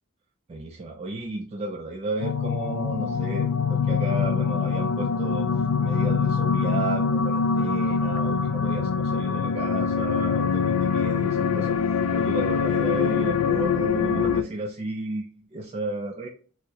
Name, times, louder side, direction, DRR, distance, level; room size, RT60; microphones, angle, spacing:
voice 1, 0.5-5.5 5.8-11.8 12.1-16.3, right 2 dB, 30° right, 1 dB, 0.3 m, -33 dB
sound 1, 2.2-14.4, left 6 dB, 80° left, 0.3 m, -24 dB
4.2 x 2.0 x 2.8 m, 0.40 s
head